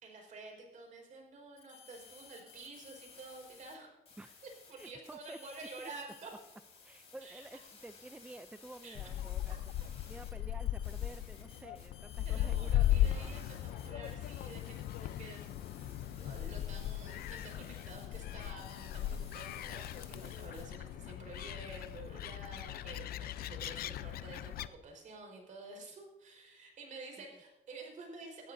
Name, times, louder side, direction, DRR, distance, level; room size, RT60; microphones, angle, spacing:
voice 1, 0.0-4.0 4.7-6.3 7.2-7.4 8.8-9.0 12.2-28.5, right 3 dB, 50° right, 1 dB, 4.4 m, -50 dB
sound 1, 1.6-3.7 4.1-20.6, left 5 dB, 35° left, 4.4 m, -57 dB
voice 2, 4.7-5.4 5.8-5.9 6.8-9.6 10.1-13.4, right 1 dB, 5° right, 11 dB, 0.4 m, -51 dB
Gull seagull, 8.9-24.7, left 12 dB, 65° left, 0.5 m, -37 dB
19.0 x 13.0 x 2.6 m, 0.98 s
cardioid pair, 110°, 17 cm